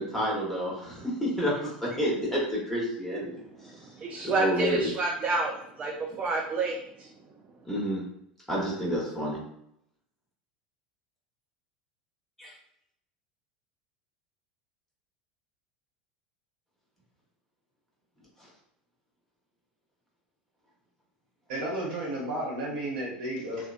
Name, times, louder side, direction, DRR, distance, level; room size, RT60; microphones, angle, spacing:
voice 1, 0.0-3.3 4.2-4.9 7.7-8.0 8.5-9.4 12.4-12.5, equal, 5° left, 1.0 m, -29 dB
voice 2, 3.3-7.1, right 3 dB, 30° right, 0.3 m, -30 dB
voice 3, 21.5-23.7, right 1 dB, 70° right, 1.0 m, -33 dB
2.6 x 2.1 x 2.4 m
hypercardioid pair, 80°, 5 cm